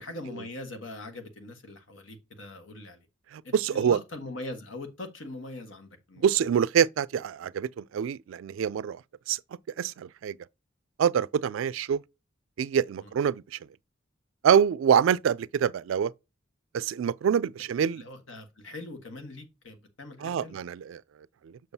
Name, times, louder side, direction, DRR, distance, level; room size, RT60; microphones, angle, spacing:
voice 1, 0.0-3.0 3.4-6.2 13.0-13.1 17.9-20.6, left 2 dB, 75° left, 1.4 m, -42 dB
voice 2, 3.3-4.0 6.2-9.0 9.3-9.4 9.8-10.4 11.0-12.0 12.6-13.6 14.4-16.1 16.7-18.0 20.2-21.0 21.4-21.5, right 8 dB, 75° right, 0.3 m, -25 dB
7.1 x 6.1 x 2.7 m
head